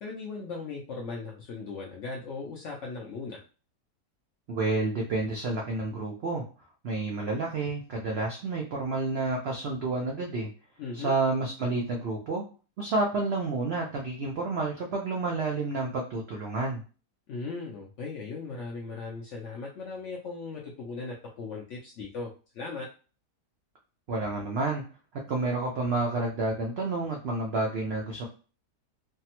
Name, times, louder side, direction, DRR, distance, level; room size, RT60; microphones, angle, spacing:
voice 1, 0.0-3.4 10.8-11.1 17.3-22.3 22.5-22.9, left 4 dB, 75° left, -2 dB, 0.7 m, -38 dB
voice 2, 4.5-6.4 6.8-10.5 10.9-12.5 12.8-16.8 24.1-24.8 25.1-28.3, right 3 dB, 90° right, 0 dB, 0.5 m, -30 dB
3.4 x 2.0 x 2.8 m, 0.36 s
omnidirectional pair, 1.7 m